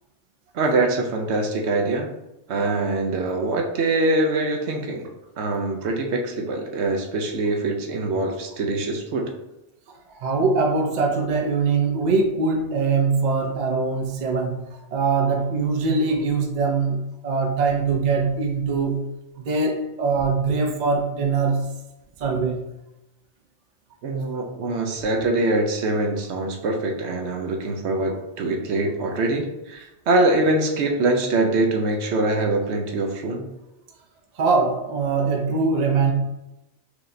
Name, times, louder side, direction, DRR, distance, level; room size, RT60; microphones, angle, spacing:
voice 1, 0.5-2.1 2.5-5.1 5.4-9.3 24.0-33.5, right 2 dB, 70° right, 2 dB, 0.9 m, -23 dB
voice 2, 10.2-19.0 19.4-21.7 22.2-22.6 34.4-36.1, right 4 dB, 50° right, 1 dB, 0.6 m, -22 dB
4.8 x 3.1 x 2.6 m, 0.92 s
omnidirectional pair, 1.2 m